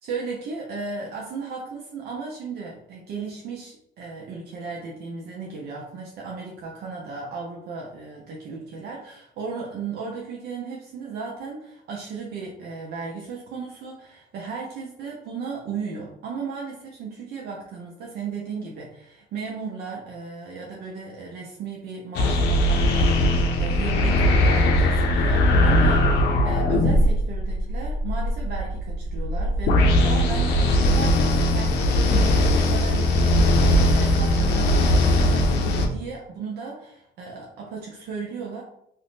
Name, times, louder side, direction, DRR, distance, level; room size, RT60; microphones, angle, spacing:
voice 1, 0.0-38.6, right 5 dB, 70° right, -2 dB, 0.6 m, -35 dB
sound 1, 22.1-35.9, left 1 dB, 80° left, 0.5 m, -20 dB
2.6 x 2.5 x 3.4 m, 0.76 s
cardioid pair, 110°, 17 cm